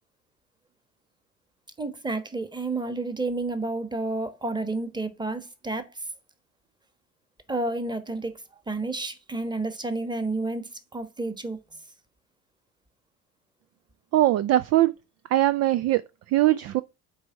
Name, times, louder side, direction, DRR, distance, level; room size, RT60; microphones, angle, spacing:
voice 1, 1.8-5.9 7.5-8.4 8.7-11.6, right 2 dB, 10° right, 1.2 m, -30 dB
voice 2, 14.1-14.9 15.3-16.0 16.3-16.8, right 15 dB, 40° right, 0.4 m, -21 dB
8.6 x 3.5 x 4.6 m
hypercardioid pair, 65°, 42 cm